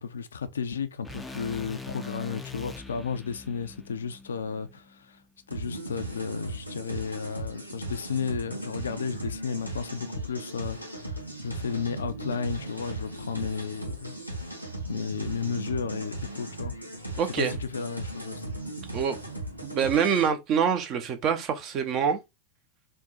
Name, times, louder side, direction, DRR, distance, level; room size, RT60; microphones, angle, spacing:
voice 1, 0.0-5.2 5.5-14.2 14.8-16.7 17.1-18.4, left 6 dB, 70° left, 0.4 m, -33 dB
sound 1, 1.0-5.2, left 3 dB, 10° left, 0.5 m, -43 dB
sound 2, 5.5-20.3, right 1 dB, 90° right, 0.8 m, -37 dB
voice 2, 17.2-17.5 18.9-19.2 19.6-22.2, right 7 dB, 35° right, 0.8 m, -25 dB
3.6 x 2.5 x 4.0 m
figure-of-eight pair, 90°, 0 cm